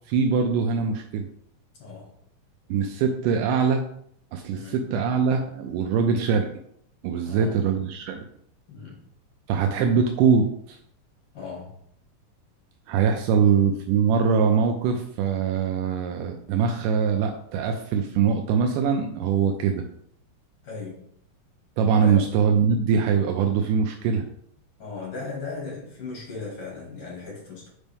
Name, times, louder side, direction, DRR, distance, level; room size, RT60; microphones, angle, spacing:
voice 1, 0.1-1.3 2.7-3.8 4.3-6.5 7.0-8.2 9.5-10.8 12.9-19.8 21.8-24.3, right 6 dB, 85° right, 4 dB, 2.1 m, -22 dB
voice 2, 1.8-2.1 4.5-4.9 7.2-7.6 8.7-9.0 11.3-11.8 13.3-13.5 20.6-21.1 22.0-22.3 24.8-27.7, left 4 dB, 50° left, -3 dB, 2.6 m, -37 dB
5.3 x 5.2 x 3.4 m, 0.68 s
omnidirectional pair, 3.7 m